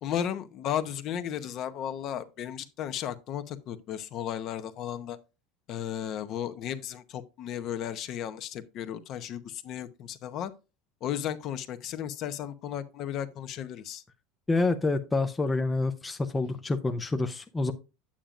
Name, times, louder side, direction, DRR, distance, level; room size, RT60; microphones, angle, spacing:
voice 1, 0.0-5.2 5.7-10.5 11.0-14.0 16.4-16.6, left 10 dB, 40° left, 0.8 m, -34 dB
voice 2, 14.5-17.7, left 3 dB, 10° left, 0.5 m, -27 dB
8.8 x 8.7 x 2.5 m
supercardioid pair, 155°, 0 cm